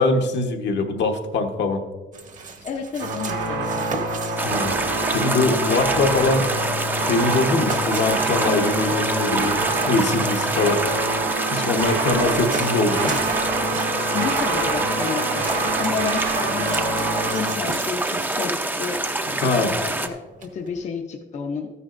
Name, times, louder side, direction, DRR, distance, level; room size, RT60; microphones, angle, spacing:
voice 1, 0.0-1.8 4.4-4.7 5.1-6.5 7.0-9.6 9.8-10.8 11.5-13.2 19.4-19.7, left 3 dB, 70° left, 3 dB, 1.1 m, -22 dB
sound 1, 2.1-20.8, right 4 dB, 45° right, 1.1 m, -38 dB
voice 2, 2.6-3.9 14.1-19.0 19.3-21.7, left 6 dB, 40° left, 3 dB, 0.6 m, -31 dB
sound 2, 3.0-17.6, right 3 dB, 70° right, 1.4 m, -26 dB
sound 3, 4.4-20.1, right 2 dB, 10° right, 0.5 m, -26 dB
13.0 x 9.7 x 2.5 m, 1.3 s
cardioid pair, 130°, 19 cm